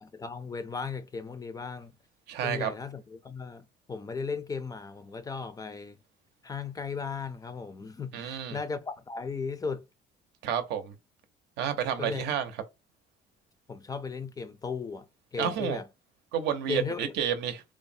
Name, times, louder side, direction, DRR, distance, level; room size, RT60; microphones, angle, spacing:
voice 1, 0.0-1.9 2.4-6.0 6.4-9.8 12.0-12.2 13.7-15.1 15.3-15.8 16.7-17.1, left 5 dB, 20° left, 0.4 m, -36 dB
voice 2, 2.3-2.7 8.1-8.6 10.4-10.9 11.6-12.5 15.4-15.8 16.3-17.6, right 9 dB, 80° right, 0.6 m, -30 dB
3.2 x 2.0 x 2.6 m
cardioid pair, 110°, 17 cm